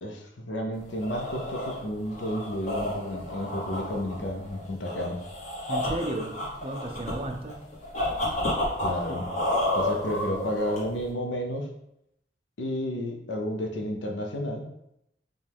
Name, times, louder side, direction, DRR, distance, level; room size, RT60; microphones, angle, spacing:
voice 1, 0.0-5.2 8.8-9.3 9.7-11.7 12.6-14.7, equal, 80° left, 2 dB, 0.7 m, -32 dB
sound 1, 0.8-11.1, left 1 dB, 40° left, 1.2 m, -31 dB
voice 2, 5.7-7.6 9.1-9.2, right 1 dB, 30° right, 5 dB, 0.4 m, -34 dB
5.2 x 2.3 x 3.5 m, 0.80 s
head